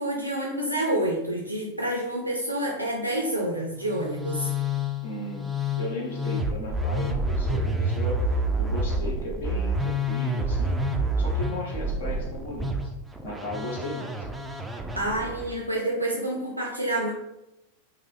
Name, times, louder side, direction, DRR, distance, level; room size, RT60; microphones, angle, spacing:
voice 1, 0.0-4.5 14.9-17.1, right 1 dB, 85° right, -2 dB, 0.5 m, -28 dB
Musical instrument, 3.8-15.6, equal, 5° right, 0.3 m, -28 dB
voice 2, 5.0-10.9 11.2-12.8 13.2-14.3, equal, 65° left, -2 dB, 0.9 m, -36 dB
3.9 x 2.6 x 2.8 m, 0.90 s
figure-of-eight pair, 90°, 0 cm